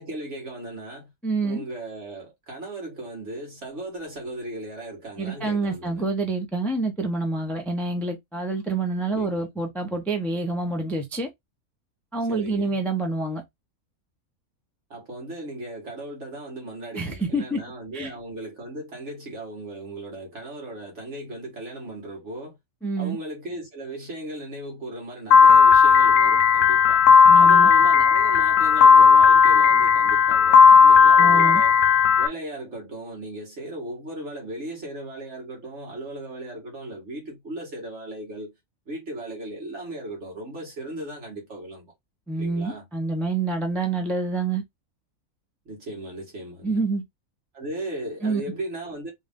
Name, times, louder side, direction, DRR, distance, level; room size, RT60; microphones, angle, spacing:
voice 1, 0.0-1.1 1.4-6.1 9.1-9.5 12.3-12.8 14.9-22.6 23.0-27.0 27.3-31.8 32.2-38.6 38.9-41.9 42.3-42.9 45.7-46.8 47.5-49.1, right 1 dB, 55° right, 2.1 m, -37 dB
voice 2, 1.2-1.6 5.2-11.3 12.1-13.4 17.0-17.6 17.9-18.1 22.8-23.2 27.3-27.7 31.2-31.6 42.3-44.6 46.6-47.0 48.2-48.4, right 3 dB, ahead, 0.6 m, -27 dB
Piano, 25.3-32.3, left 6 dB, 70° left, 0.9 m, -14 dB
3.8 x 2.6 x 3.7 m
omnidirectional pair, 1.4 m